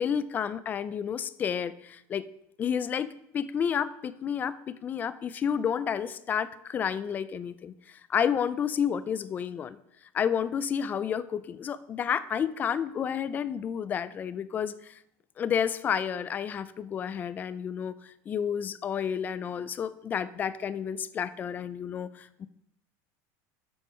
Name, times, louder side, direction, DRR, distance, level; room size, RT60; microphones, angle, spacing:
voice 1, 0.0-2.3 2.6-9.8 10.1-15.0 15.4-22.5, left 8 dB, 20° left, 15 dB, 0.3 m, -30 dB
12.5 x 5.4 x 4.3 m, 0.79 s
supercardioid pair, 165°, 9 cm